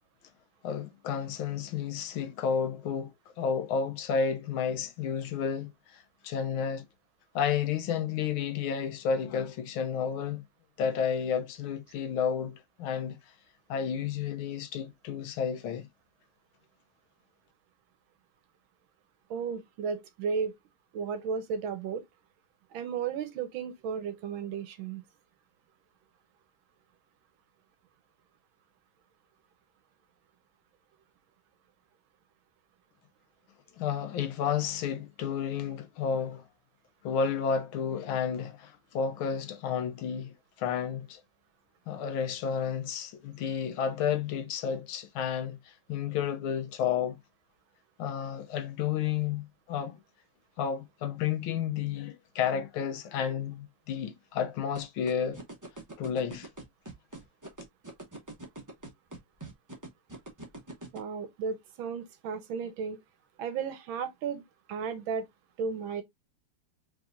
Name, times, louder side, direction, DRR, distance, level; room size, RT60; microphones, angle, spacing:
voice 1, 0.6-3.1 3.4-6.8 7.3-10.4 10.8-13.2 13.7-15.9 33.8-36.5 37.0-41.2 41.9-47.2 48.0-50.0 50.6-55.4 56.0-56.5, left 7 dB, 75° left, 1.5 m, -31 dB
voice 2, 19.3-20.5 20.9-22.0 22.7-25.0 60.9-63.0 63.4-64.4 64.7-65.2 65.6-66.0, right 6 dB, 75° right, 1.4 m, -34 dB
sound 1, 54.7-61.0, right 2 dB, 25° right, 0.4 m, -42 dB
4.8 x 3.5 x 2.5 m
omnidirectional pair, 2.4 m